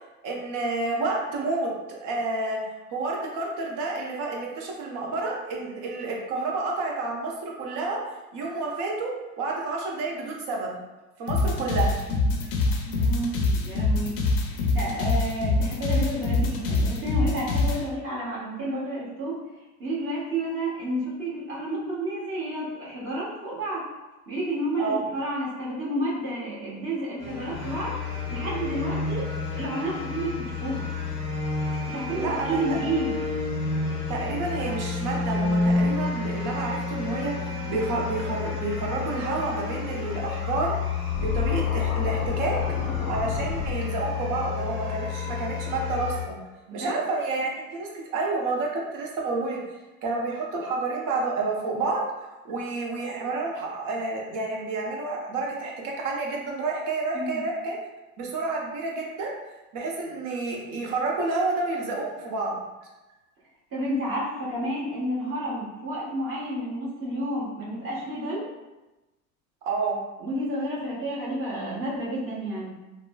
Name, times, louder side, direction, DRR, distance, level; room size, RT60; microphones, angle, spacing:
voice 1, 0.2-1.7 2.0-2.6 2.9-8.0 8.3-9.1 9.4-10.8 11.2-12.0 12.4-12.5 24.8-25.0 32.2-32.6 34.1-40.7 41.2-42.6 43.1-46.4 46.7-49.6 50.0-52.0 52.4-57.8 58.2-59.3 59.7-62.6 69.6-70.0, right 3 dB, 45° right, -1 dB, 0.8 m, -29 dB
sound 1, 11.3-17.8, left 2 dB, 75° left, 0.6 m, -24 dB
voice 2, 12.8-14.1 14.5-19.4 19.8-23.9 24.3-28.0 28.3-29.3 29.5-30.9 31.9-33.1 46.7-46.9 57.1-57.4 63.7-68.5 70.2-72.8, right 1 dB, 30° right, -8 dB, 1.2 m, -30 dB
sound 2, 27.2-46.2, left 5 dB, ahead, 1.2 m, -29 dB
Scratching (performance technique), 41.1-43.7, left 2 dB, 30° left, 0.7 m, -33 dB
3.0 x 2.0 x 2.2 m, 1.1 s
hypercardioid pair, 100°, 43 cm